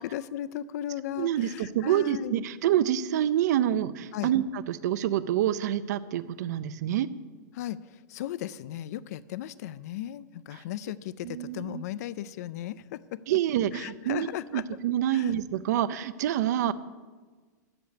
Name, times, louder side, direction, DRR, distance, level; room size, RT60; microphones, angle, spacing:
voice 1, 0.0-2.4 4.1-4.3 7.5-13.2 13.7-14.6 15.1-15.3, left 12 dB, 60° left, 17 dB, 0.4 m, -36 dB
voice 2, 1.2-7.1 10.5-10.6 11.2-11.8 13.3-16.7, right 11 dB, 65° right, 16 dB, 0.6 m, -27 dB
13.0 x 5.1 x 8.2 m, 1.4 s
supercardioid pair, 165°, 10 cm